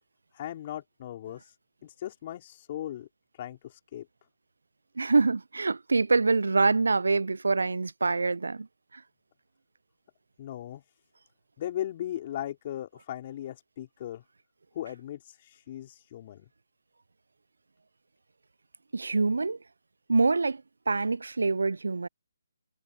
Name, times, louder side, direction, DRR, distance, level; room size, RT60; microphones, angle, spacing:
voice 1, 0.3-1.4 1.8-3.1 3.4-4.1 10.4-10.8 11.6-14.2 14.7-16.5, left 12 dB, 35° left, 4.3 m, -38 dB
voice 2, 5.0-8.7 8.9-9.0 18.9-19.6 20.1-22.1, right 3 dB, 80° right, 0.3 m, -25 dB
figure-of-eight pair, 150°, 0 cm